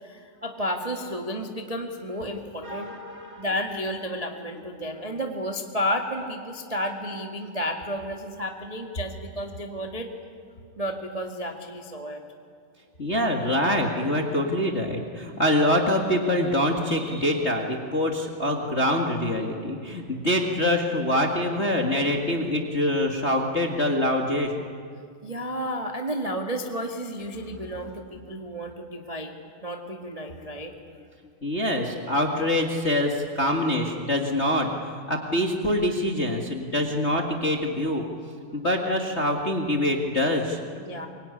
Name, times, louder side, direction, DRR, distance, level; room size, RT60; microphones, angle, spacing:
voice 1, 0.0-2.9 3.4-10.1 10.8-12.2 25.2-29.3 29.6-30.7 40.8-41.1, equal, 25° right, 2 dB, 0.8 m, -32 dB
voice 2, 2.6-3.4 13.0-24.5 31.4-34.7 35.1-38.0 38.5-40.6, left 1 dB, 30° left, 1 dB, 1.3 m, -25 dB
24.0 x 23.5 x 9.9 m, 2.2 s
omnidirectional pair, 4.1 m